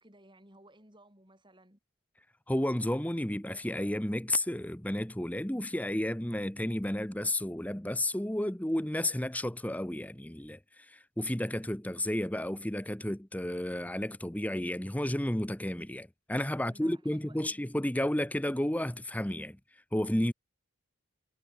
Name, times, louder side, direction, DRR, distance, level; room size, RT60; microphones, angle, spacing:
voice 1, 0.0-1.8 16.5-17.6, right 1 dB, 20° right, 7.3 m, -57 dB
voice 2, 2.5-19.6 19.9-20.3, left 1 dB, 5° left, 0.9 m, -32 dB
head